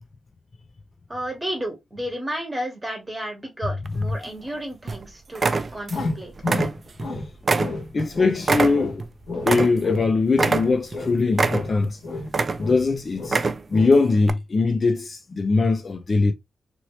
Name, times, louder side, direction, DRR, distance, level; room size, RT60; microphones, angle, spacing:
voice 1, 1.1-5.4 5.7-6.3, right 1 dB, 10° right, 1.2 m, -32 dB
sound 1, 3.9-4.5 4.9-5.0 5.4-6.1 6.4-7.1 7.5-10.0 10.3-11.0 11.3-11.9 12.3-12.9 13.2-13.8 14.2-14.3, right 4 dB, 35° right, 0.3 m, -24 dB
sound 2, 5.9-7.3 7.6-8.4 8.7-10.6 10.9-12.9 13.1-13.4 13.7-14.0, left 3 dB, 70° left, 1.7 m, -31 dB
voice 2, 7.9-9.1 9.4-12.0 12.6-13.4 13.7-16.3, left 3 dB, 40° left, 0.4 m, -21 dB
2.9 x 2.8 x 3.1 m
wide cardioid pair, 135°, 0 cm